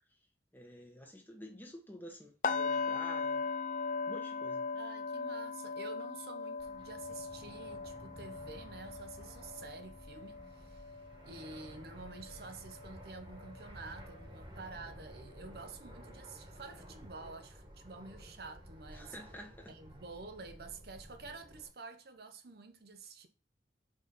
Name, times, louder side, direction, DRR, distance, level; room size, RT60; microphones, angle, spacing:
voice 1, 0.5-3.5 4.1-4.6 18.9-19.7, equal, 10° left, 1.2 m, -50 dB
sound 1, 2.4-12.4 12.7-13.0 13.4-13.6, left 4 dB, 45° left, 0.5 m, -39 dB
voice 2, 4.7-11.0 11.2-19.2 19.7-23.3, right 3 dB, 60° right, 0.8 m, -49 dB
Fixed-wing aircraft airplane, 6.6-21.7, equal, 25° right, 1.5 m, -53 dB
5.3 x 4.1 x 5.5 m
head